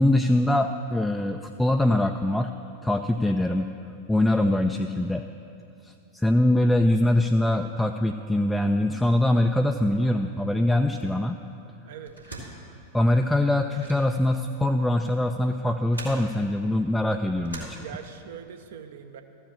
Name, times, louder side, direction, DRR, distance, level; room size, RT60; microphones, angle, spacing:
voice 1, 0.0-2.5 2.8-3.7 4.1-5.2 5.8-11.4 12.9-17.8, left 1 dB, 5° left, 5 dB, 0.3 m, -23 dB
voice 2, 11.8-12.1 17.8-19.2, right 8 dB, 60° right, 7 dB, 0.7 m, -42 dB
sound 1, 12.0-18.4, right 2 dB, 85° right, 2.2 m, -44 dB
13.5 x 5.0 x 7.3 m, 2.6 s
figure-of-eight pair, 90°, 0 cm